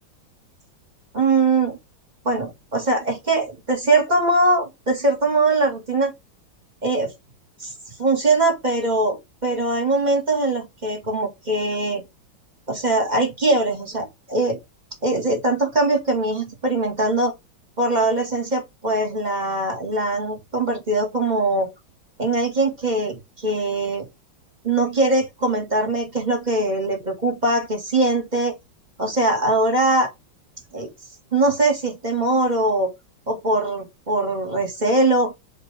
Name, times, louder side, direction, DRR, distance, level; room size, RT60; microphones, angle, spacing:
voice 1, 1.1-1.8 2.2-6.1 6.8-7.1 7.6-7.7 8.0-12.0 12.7-14.6 15.0-17.3 17.8-21.7 22.2-24.0 24.6-28.5 29.0-30.1 30.7-30.9 31.3-32.9 33.3-35.3, right 2 dB, 20° right, 2.0 m, -21 dB
7.0 x 3.2 x 4.1 m
omnidirectional pair, 2.2 m